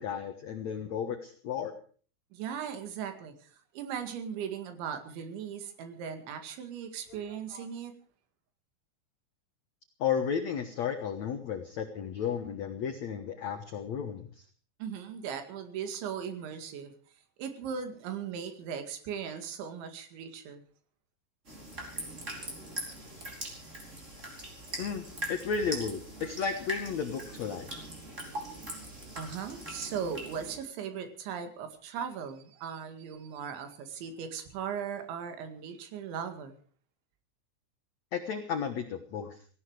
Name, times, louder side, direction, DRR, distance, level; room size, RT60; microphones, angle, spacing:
voice 1, 0.0-1.7 7.5-7.7 10.0-14.4 24.8-27.7 38.1-39.4, left 7 dB, 90° left, 7 dB, 1.5 m, -33 dB
voice 2, 2.3-7.9 14.8-17.0 17.4-20.6 29.2-36.5, right 7 dB, 75° right, 7 dB, 4.4 m, -38 dB
sound 1, 21.5-30.6, right 1 dB, 15° right, 4.5 m, -41 dB
18.0 x 16.5 x 4.8 m, 0.42 s
omnidirectional pair, 5.3 m